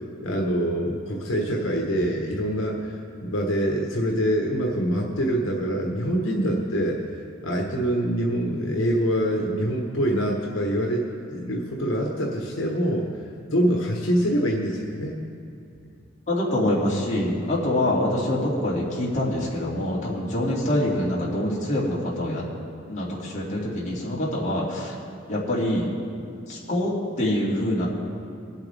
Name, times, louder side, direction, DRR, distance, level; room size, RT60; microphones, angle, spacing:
voice 1, 0.2-2.9 3.2-7.0 7.4-13.1 13.5-15.2, equal, 80° left, -1 dB, 1.4 m, -25 dB
voice 2, 16.3-22.4 22.9-24.9 25.3-26.0 26.5-26.9 27.2-27.9, left 1 dB, 40° left, -5 dB, 2.6 m, -25 dB
21.0 x 8.1 x 3.5 m, 2.6 s
head